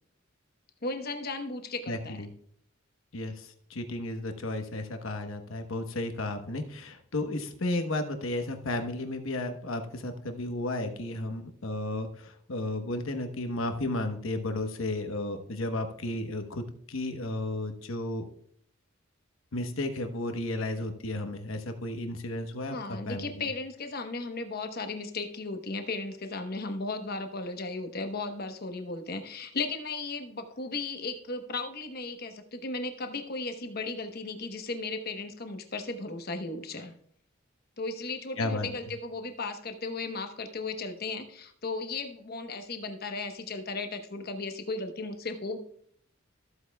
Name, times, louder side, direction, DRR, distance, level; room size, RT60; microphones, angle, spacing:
voice 1, 0.8-2.2 22.7-36.9 37.8-45.6, left 3 dB, 50° left, 7 dB, 1.0 m, -35 dB
voice 2, 1.9-2.3 3.1-18.3 19.5-23.4 38.4-38.7, left 2 dB, 85° left, 6 dB, 1.0 m, -33 dB
14.5 x 8.2 x 2.3 m, 0.64 s
head